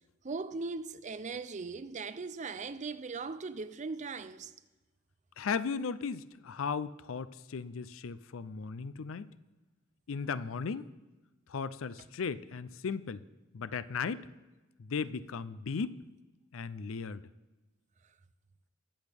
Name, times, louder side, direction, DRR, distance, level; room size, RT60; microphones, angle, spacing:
voice 1, 0.2-4.5, right 4 dB, 35° right, 0.5 m, -39 dB
voice 2, 5.4-9.3 10.1-10.9 11.5-13.2 13.5-14.3 14.8-16.0 16.5-17.2, left 5 dB, 70° left, 0.5 m, -36 dB
21.5 x 8.0 x 3.5 m
head